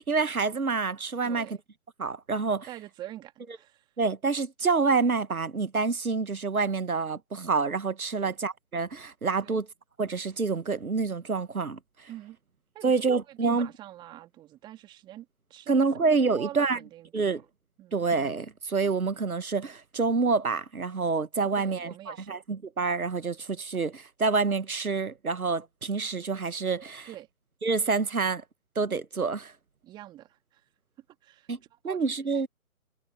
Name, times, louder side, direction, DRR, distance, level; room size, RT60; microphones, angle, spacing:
voice 1, 0.0-1.5 2.0-2.7 4.0-9.7 10.0-12.1 12.8-13.7 15.7-16.8 17.1-17.4 17.9-27.1 27.6-28.4 28.7-29.5 31.5-31.6 31.8-32.5, right 4 dB, 85° right, 1.3 m, -27 dB
voice 2, 1.2-1.6 2.7-3.9 8.1-8.4 9.4-9.6 12.1-12.4 12.7-15.8 16.3-17.4 17.8-18.0 21.6-22.4 27.1-27.3 29.8-30.7 31.2-32.0 32.3-32.5, right 13 dB, 10° right, 2.0 m, -45 dB
figure-of-eight pair, 145°, 42 cm